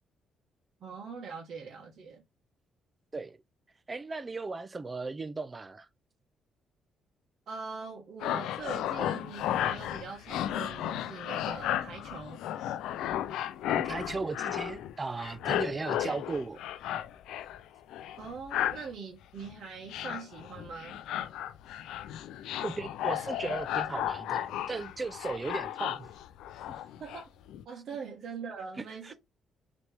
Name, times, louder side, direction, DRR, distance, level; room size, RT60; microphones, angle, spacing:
voice 1, 0.8-2.2 7.5-12.4 18.1-21.0 27.0-27.3 27.6-29.1, right 5 dB, 60° right, 1.2 m, -42 dB
voice 2, 3.9-5.9 13.7-16.6 22.6-26.1 29.0-29.1, right 3 dB, 25° right, 0.6 m, -36 dB
sound 1, 8.2-14.9 15.2-17.6 17.9-18.9 19.4-19.5 19.9-27.2 27.5-27.6, left 11 dB, 85° left, 0.4 m, -34 dB
4.1 x 3.0 x 3.3 m
cardioid pair, 90°, 0 cm